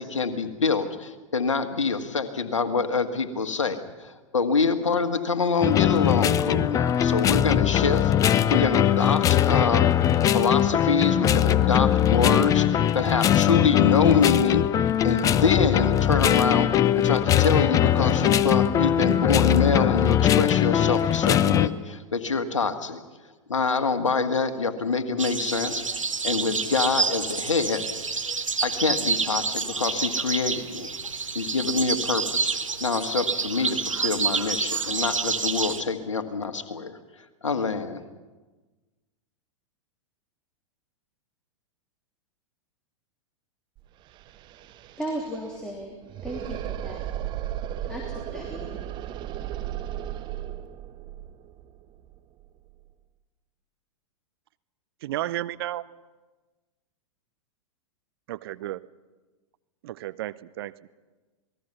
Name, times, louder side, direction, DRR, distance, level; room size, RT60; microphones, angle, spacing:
voice 1, 0.0-9.9 10.3-14.6 15.0-23.0 23.5-27.8 28.6-30.9 31.3-37.0 37.4-38.0, left 4 dB, 70° left, 8 dB, 1.8 m, -26 dB
sound 1, 5.6-21.7, left 10 dB, 20° left, 0.6 m, -21 dB
sound 2, 25.2-35.8, right 4 dB, 80° right, 1.2 m, -28 dB
sound 3, 43.8-43.9 44.1-52.9, right 12 dB, 30° right, 1.0 m, -36 dB
voice 2, 45.0-45.9 46.2-47.0 47.9-48.8, equal, 5° left, -1 dB, 3.2 m, -35 dB
voice 3, 55.0-55.8 58.3-58.8 59.8-60.9, right 14 dB, 50° right, 15 dB, 0.7 m, -32 dB
27.5 x 19.5 x 5.8 m, 1.2 s
figure-of-eight pair, 95°, 16 cm